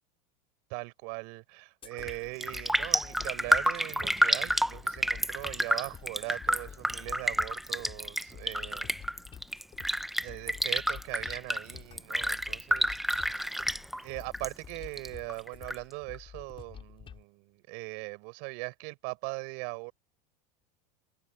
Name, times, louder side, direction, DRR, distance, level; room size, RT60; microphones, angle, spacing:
voice 1, 0.7-9.0 10.2-13.5 14.0-19.9, right 35 dB, 60° right, 7.3 m, -40 dB
sound 1, 1.8-17.2, left 8 dB, 25° left, 6.5 m, -49 dB
Raindrop, 1.9-2.2 2.4-14.5 14.8-15.8 16.1-16.2, equal, ahead, 0.8 m, -29 dB
supercardioid pair, 130°, 21 cm